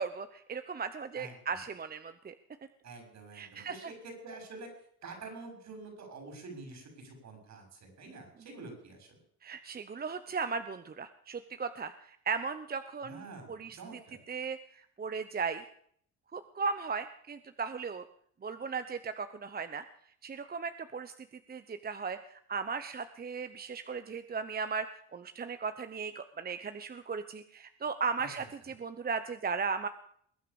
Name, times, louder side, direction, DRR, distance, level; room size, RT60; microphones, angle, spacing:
voice 1, 0.0-2.3 3.3-3.7 9.4-13.8 14.3-15.6 16.3-18.0 18.4-19.8 20.2-21.1 21.5-29.9, right 5 dB, 30° right, 11 dB, 0.9 m, -37 dB
voice 2, 1.1-1.6 2.8-4.7 5.0-9.2 13.0-14.2 28.2-28.3, right 3 dB, 65° right, 5 dB, 6.4 m, -47 dB
21.5 x 9.2 x 7.0 m, 0.64 s
cardioid pair, 90°, 30 cm